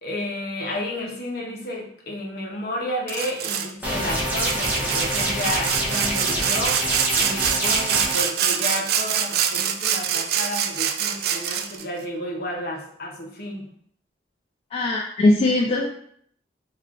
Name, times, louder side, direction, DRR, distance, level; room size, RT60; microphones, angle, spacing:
voice 1, 0.0-6.8 7.2-13.7, left 1 dB, 60° left, -1 dB, 0.8 m, -31 dB
Sawing, 3.1-3.7 4.1-11.8, right 8 dB, 60° right, 0.3 m, -25 dB
sound 1, 3.8-8.2, equal, 10° right, 0.9 m, -26 dB
voice 2, 14.7-15.9, left 2 dB, 35° left, -1 dB, 0.3 m, -20 dB
3.2 x 2.4 x 3.6 m, 0.63 s
head